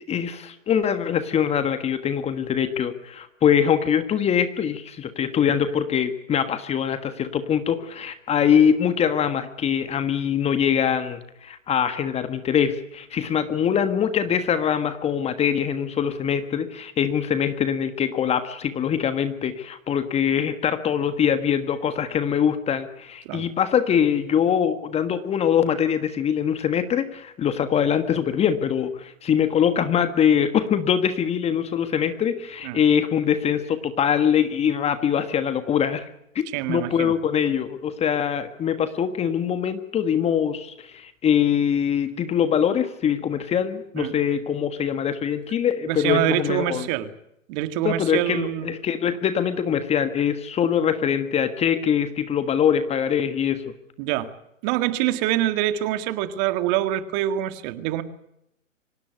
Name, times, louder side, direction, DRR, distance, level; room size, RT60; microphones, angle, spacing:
voice 1, 0.1-36.1 36.3-46.9 47.8-53.6, left 8 dB, 15° left, 11 dB, 1.5 m, -23 dB
voice 2, 36.5-37.1 44.0-44.1 45.9-47.1 47.5-48.7 54.0-54.3 54.6-58.0, right 13 dB, 35° right, 11 dB, 2.0 m, -25 dB
25.5 x 18.0 x 9.4 m, 0.79 s
hypercardioid pair, 130°, 39 cm